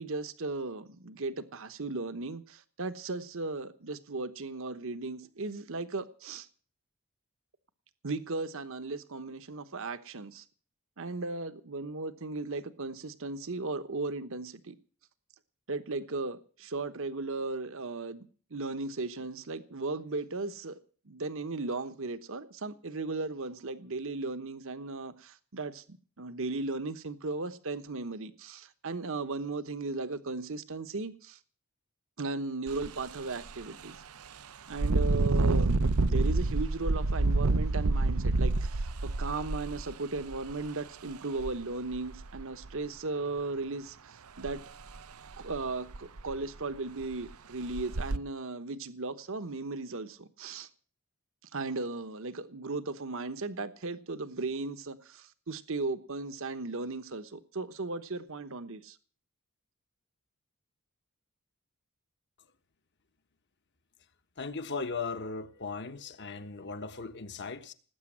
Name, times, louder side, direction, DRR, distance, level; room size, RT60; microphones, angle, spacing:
voice 1, 0.0-6.5 8.0-10.4 11.0-14.8 15.7-20.8 21.1-31.4 32.2-34.0 34.7-44.6 45.4-50.7 51.5-59.0, right 3 dB, 65° right, 1.1 m, -36 dB
Engine, 32.7-32.9 33.4-33.5 34.7-40.5 41.4-41.5 41.9-42.7 44.5-44.6 45.0-45.1 45.5-45.6 45.9-46.4 47.0-47.1 47.7-48.2, right 2 dB, 85° right, 0.8 m, -27 dB
voice 2, 64.4-67.7, left 4 dB, 55° left, 1.3 m, -37 dB
19.0 x 8.8 x 7.3 m
head